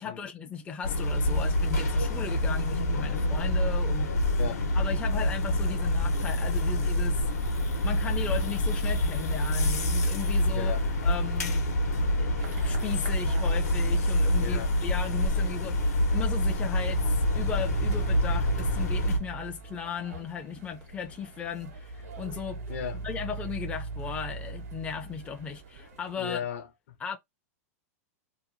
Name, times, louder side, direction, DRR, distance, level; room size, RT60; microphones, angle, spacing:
voice 1, 0.0-4.1 4.8-7.3 7.8-10.7 11.0-11.7 12.0-22.6 23.0-26.5 27.0-27.2, left 6 dB, 15° left, 0.4 m, -36 dB
sound 1, 0.8-19.2, left 1 dB, 85° left, 0.9 m, -26 dB
voice 2, 10.5-10.9 14.4-14.7 22.7-23.1 26.2-27.0, left 8 dB, 65° left, 0.7 m, -36 dB
sound 2, 12.4-26.2, right 2 dB, 90° right, 1.2 m, -50 dB
sound 3, 16.4-20.1 21.4-25.8, right 4 dB, 55° right, 0.5 m, -37 dB
2.8 x 2.1 x 2.6 m
hypercardioid pair, 130°, 8 cm